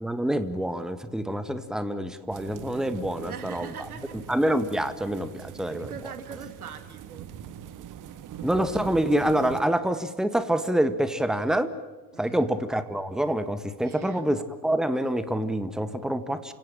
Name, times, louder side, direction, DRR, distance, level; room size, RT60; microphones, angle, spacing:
voice 1, 0.0-3.7 4.1-5.9 8.4-11.7 12.2-16.5, right 1 dB, ahead, 12 dB, 1.6 m, -26 dB
sound 1, 2.3-9.6, right 10 dB, 45° right, 1.7 m, -42 dB
voice 2, 3.2-4.2 5.7-7.3 12.1-12.5 13.8-14.3, right 7 dB, 80° right, 10 dB, 2.1 m, -42 dB
28.5 x 17.5 x 9.0 m, 1.3 s
figure-of-eight pair, 60°, 44 cm